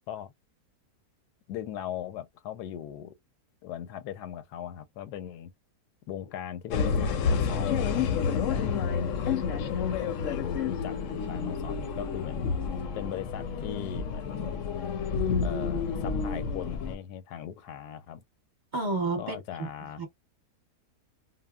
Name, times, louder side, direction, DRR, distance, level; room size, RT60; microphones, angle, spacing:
voice 1, 1.5-3.1 3.6-5.5 6.1-8.8 9.5-12.5 12.9-14.6 15.4-18.2 19.2-20.0, left 10 dB, 85° left, 1.2 m, -39 dB
sound 1, 6.7-16.9, left 6 dB, 70° left, 0.8 m, -29 dB
voice 2, 18.7-19.7 20.0-20.1, right 3 dB, 35° right, 1.0 m, -30 dB
3.3 x 2.0 x 2.2 m
omnidirectional pair, 1.7 m